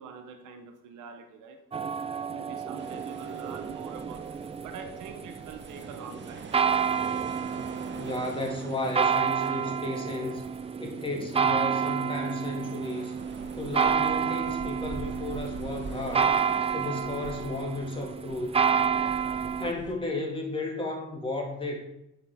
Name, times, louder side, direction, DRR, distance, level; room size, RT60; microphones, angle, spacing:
voice 1, 0.0-1.6 2.3-6.5, right 6 dB, 85° right, 5 dB, 0.9 m, -44 dB
sound 1, 1.7-19.7, right 6 dB, 20° right, 0.3 m, -29 dB
sound 2, 2.8-19.9, right 3 dB, 40° right, 1.0 m, -45 dB
voice 2, 7.9-10.4 10.8-13.1 13.5-16.3 16.7-18.6 19.6-21.8, left 2 dB, 15° left, 0 dB, 2.0 m, -33 dB
8.8 x 5.1 x 3.4 m, 0.86 s
cardioid pair, 90°, 30 cm